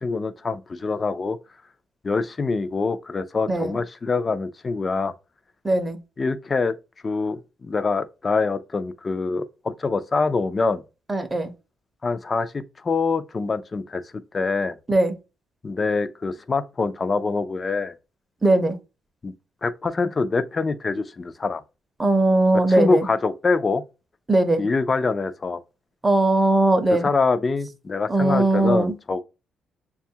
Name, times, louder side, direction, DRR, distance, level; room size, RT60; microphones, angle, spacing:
voice 1, 0.0-1.4 2.0-5.1 6.2-6.8 7.0-10.8 12.0-14.0 14.3-14.8 15.6-17.9 19.2-19.3 19.6-21.6 22.5-23.8 24.6-25.6 26.9-29.2, left 4 dB, 30° left, 0.4 m, -25 dB
voice 2, 5.6-6.0 11.1-11.5 14.9-15.1 18.4-18.8 22.0-23.1 24.3-24.6 26.0-27.1 28.1-28.9, right 2 dB, 20° right, 0.7 m, -19 dB
6.7 x 2.3 x 2.7 m
cardioid pair, 90°, 0 cm